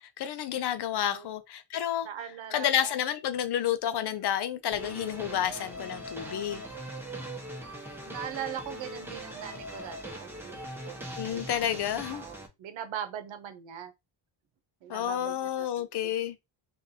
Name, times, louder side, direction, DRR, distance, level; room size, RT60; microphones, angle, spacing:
voice 1, 0.2-2.1 2.5-6.6 11.2-12.2 14.9-16.4, left 10 dB, 60° left, 0.7 m, -30 dB
voice 2, 2.0-3.0 8.1-10.6 10.8-11.8 12.1-13.9 14.8-16.1, right 9 dB, 75° right, 0.9 m, -41 dB
sound 1, 4.7-12.5, right 1 dB, 5° right, 1.2 m, -41 dB
3.8 x 2.7 x 2.8 m
cardioid pair, 110°, 46 cm